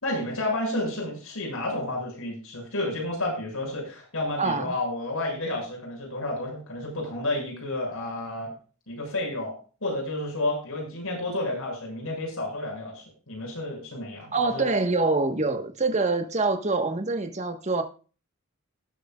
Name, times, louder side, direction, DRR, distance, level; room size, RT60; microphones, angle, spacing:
voice 1, 0.0-8.5 8.9-9.5 9.8-14.7, left 2 dB, 80° left, 6.9 m, -31 dB
voice 2, 4.4-4.7 14.3-17.8, right 3 dB, 30° right, 1.4 m, -25 dB
19.0 x 8.3 x 2.4 m
head